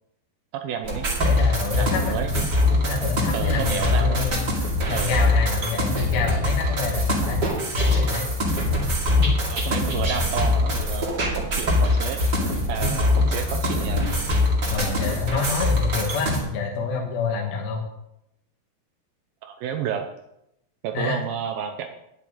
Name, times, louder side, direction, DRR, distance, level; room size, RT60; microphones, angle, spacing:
voice 1, 0.5-1.1 1.8-2.3 3.3-4.3 4.9-5.2 9.5-12.2 12.7-14.1 19.4-20.0 20.8-21.9, right 8 dB, 80° right, 6 dB, 2.2 m, -31 dB
sound 1, 0.8-16.4, left 2 dB, 35° right, 2.0 m, -23 dB
voice 2, 1.2-2.2 2.8-4.5 4.9-7.4 7.7-8.3 9.2-9.3 14.7-17.8 20.9-21.2, left 5 dB, 65° left, -1 dB, 3.0 m, -28 dB
11.0 x 10.5 x 3.7 m, 0.81 s
omnidirectional pair, 4.9 m